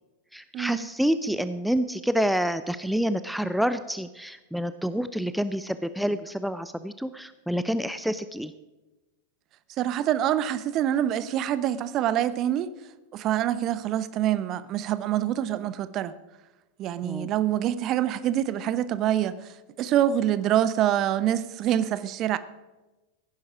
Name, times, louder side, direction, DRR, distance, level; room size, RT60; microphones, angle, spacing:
voice 1, 0.3-8.5 17.0-17.3, equal, ahead, 0.5 m, -28 dB
voice 2, 9.8-12.7 13.1-16.1 16.8-19.4 19.8-22.4, right 11 dB, 35° right, 0.8 m, -25 dB
16.0 x 10.5 x 4.9 m
figure-of-eight pair, 90°, 0 cm